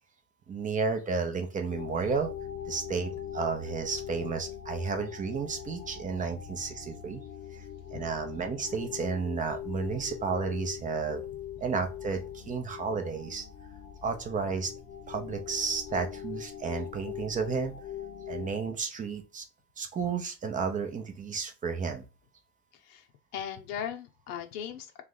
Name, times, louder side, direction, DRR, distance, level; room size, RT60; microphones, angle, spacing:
voice 1, 0.5-2.3 2.7-7.2 7.5-7.7 7.9-11.2 11.6-13.5 14.0-14.7 15.1-17.7 18.3-19.4 19.8-22.0, right 5 dB, 20° right, 0.5 m, -32 dB
sound 1, 1.7-18.6, left 9 dB, 30° left, 0.6 m, -41 dB
voice 2, 22.7-23.1 23.3-25.0, left 8 dB, 75° left, 0.8 m, -38 dB
3.2 x 3.1 x 3.8 m
supercardioid pair, 130°, 46 cm